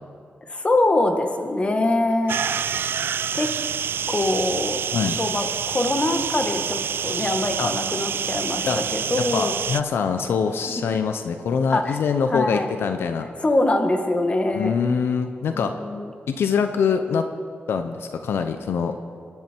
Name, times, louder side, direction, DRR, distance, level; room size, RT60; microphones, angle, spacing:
voice 1, 0.5-2.7 3.3-3.5 4.1-4.8 5.2-9.6 11.7-12.0 12.3-12.7 13.4-14.8 15.5-16.1, left 2 dB, 30° left, 5 dB, 1.7 m, -23 dB
sound 1, 2.3-9.8, right 8 dB, 70° right, 0.3 m, -27 dB
voice 2, 9.2-13.3 14.6-15.7 16.3-17.2 17.7-19.0, left 6 dB, 85° left, 7 dB, 0.8 m, -24 dB
25.0 x 11.0 x 4.6 m, 2.3 s
cardioid pair, 90°, 4 cm